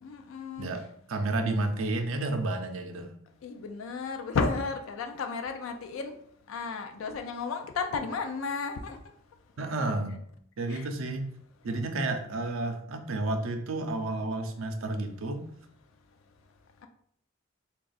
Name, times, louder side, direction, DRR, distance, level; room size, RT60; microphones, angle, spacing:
voice 1, 0.0-0.7 3.4-6.1 6.5-9.0 10.7-10.9, left 4 dB, 80° left, 0.4 m, -33 dB
voice 2, 1.1-3.1 9.6-10.2 10.6-11.3 11.6-15.4, right 2 dB, 90° right, 0.5 m, -31 dB
3.4 x 2.3 x 3.9 m
head